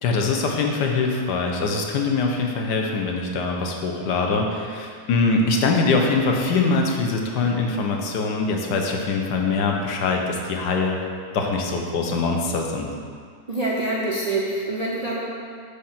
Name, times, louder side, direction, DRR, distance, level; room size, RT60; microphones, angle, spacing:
voice 1, 0.0-11.0 11.3-12.9, left 3 dB, 75° left, 1 dB, 1.3 m, -23 dB
voice 2, 13.5-15.2, right 2 dB, 90° right, -5 dB, 0.3 m, -25 dB
5.1 x 4.3 x 5.7 m, 2.1 s
omnidirectional pair, 1.8 m